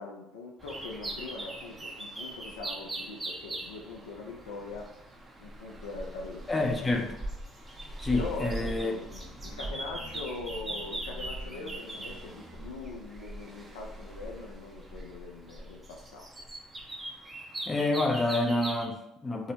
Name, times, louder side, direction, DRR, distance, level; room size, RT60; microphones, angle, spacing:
voice 1, 0.0-4.8 5.4-6.6 8.1-16.3, left 3 dB, 85° left, 0 dB, 0.4 m, -42 dB
sound 1, 0.6-18.8, right 1 dB, 25° right, 0.6 m, -40 dB
voice 2, 6.5-7.1 8.0-8.9 17.7-19.5, left 2 dB, 25° left, 2 dB, 0.5 m, -28 dB
2.7 x 2.0 x 2.8 m, 0.86 s
hypercardioid pair, 65°, 0 cm